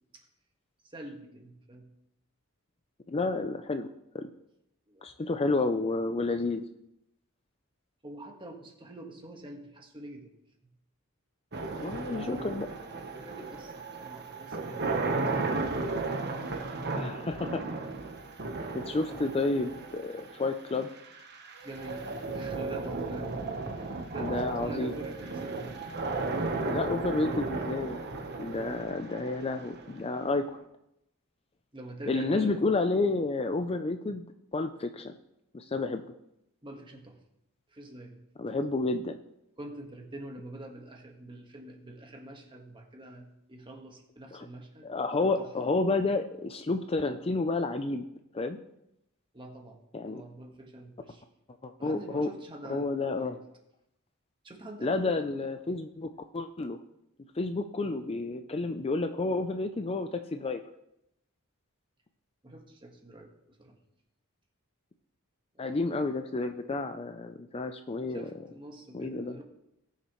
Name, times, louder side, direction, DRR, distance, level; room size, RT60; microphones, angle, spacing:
voice 1, 0.8-1.9 4.9-5.3 8.0-10.3 12.1-12.8 13.2-16.9 19.1-19.3 21.6-23.4 23.7-25.8 26.2-26.7 31.7-32.6 36.6-37.2 37.7-38.2 39.6-45.5 49.3-51.2 51.8-53.4 54.4-55.4 62.4-63.8 65.5-66.0 68.1-69.4, right 1 dB, 25° right, 2 dB, 1.5 m, -46 dB
voice 2, 3.1-3.9 4.1-4.3 5.0-6.6 11.8-12.7 17.0-17.7 18.7-20.9 24.2-24.9 26.7-28.0 28.4-30.4 32.1-35.1 35.5-36.0 38.4-39.2 44.3-44.5 44.8-48.0 48.3-48.6 49.9-50.2 51.6-52.3 52.7-53.3 54.8-56.8 57.4-60.6 65.6-68.3 68.9-69.4, left 3 dB, 25° left, 7 dB, 0.5 m, -30 dB
sound 1, 11.5-30.6, right 3 dB, 50° right, 1.1 m, -35 dB
19.0 x 6.6 x 3.1 m, 0.83 s
head